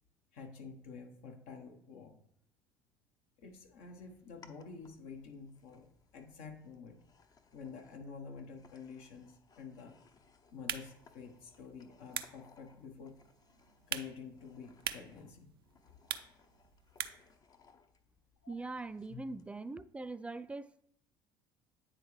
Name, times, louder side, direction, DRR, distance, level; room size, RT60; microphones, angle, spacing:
voice 1, 0.3-2.2 3.4-5.8 6.1-7.0 7.5-9.9 10.5-13.1 13.9-15.5 18.4-18.7, left 5 dB, 65° left, 1.1 m, -49 dB
sound 1, 3.4-19.5, left 6 dB, 30° left, 0.7 m, -63 dB
sound 2, 10.5-17.4, right 10 dB, 85° right, 0.4 m, -45 dB
voice 2, 18.5-20.8, right 3 dB, 10° right, 0.3 m, -42 dB
9.0 x 3.7 x 3.2 m
hypercardioid pair, 60°, 12 cm